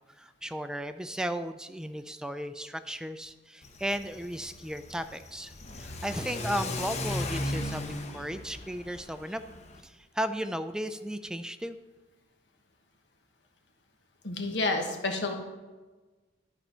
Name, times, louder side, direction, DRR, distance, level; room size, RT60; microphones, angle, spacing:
voice 1, 0.2-5.5 5.8-9.4 9.8-11.8, equal, 5° right, 10 dB, 0.3 m, -35 dB
Car / Accelerating revving vroom, 3.6-9.8, left 1 dB, 40° left, 0.8 m, -37 dB
voice 2, 14.2-15.3, left 2 dB, 75° left, 3 dB, 1.2 m, -29 dB
11.5 x 4.3 x 5.6 m, 1.2 s
head